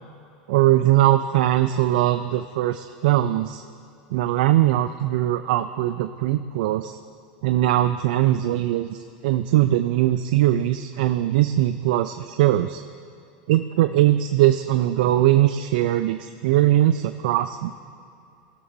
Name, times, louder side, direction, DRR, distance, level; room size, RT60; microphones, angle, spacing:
voice 1, 0.5-3.6 4.1-7.0 7.4-9.0 9.2-12.8 13.5-17.7, right 13 dB, 70° right, 9 dB, 0.4 m, -20 dB
18.5 x 6.8 x 2.7 m, 2.5 s
supercardioid pair, 120°, 5 cm